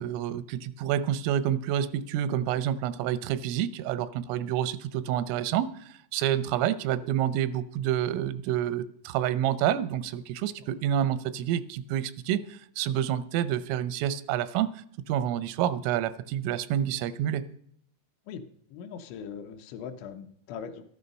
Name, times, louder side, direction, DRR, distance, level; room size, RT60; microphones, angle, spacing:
voice 1, 0.0-17.5, right 10 dB, 85° right, 15 dB, 3.3 m, -28 dB
voice 2, 18.7-20.8, left 7 dB, 80° left, 7 dB, 3.0 m, -40 dB
13.0 x 11.0 x 5.3 m, 0.65 s
omnidirectional pair, 5.7 m